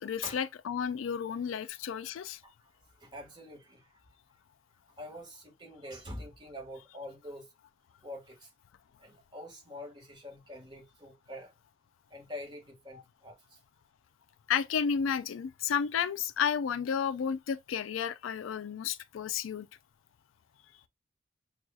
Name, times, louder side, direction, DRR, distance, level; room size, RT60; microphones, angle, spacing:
voice 1, 0.0-2.4 14.5-19.7, left 7 dB, 90° left, 0.4 m, -32 dB
voice 2, 2.4-3.9 5.0-7.5 8.0-8.5 9.0-11.5 12.1-13.6, left 1 dB, 25° right, 1.5 m, -45 dB
6.1 x 2.4 x 2.3 m
head